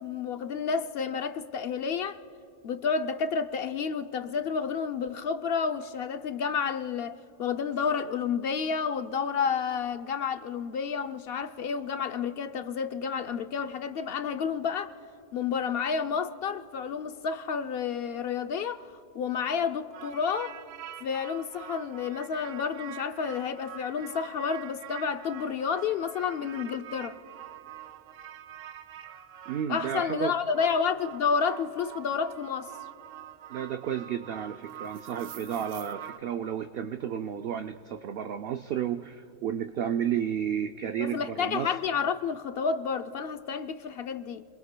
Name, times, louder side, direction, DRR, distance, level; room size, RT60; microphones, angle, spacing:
voice 1, 0.0-2.2 2.6-14.9 15.3-18.8 19.1-20.5 21.0-27.2 29.7-32.7 41.0-44.5, left 6 dB, 60° left, 0.7 m, -30 dB
sound 1, 19.9-36.2, right 10 dB, 80° right, 1.0 m, -45 dB
voice 2, 29.5-30.3 33.5-41.7, right 9 dB, 60° right, 0.6 m, -32 dB
29.5 x 22.0 x 2.2 m
omnidirectional pair, 1.3 m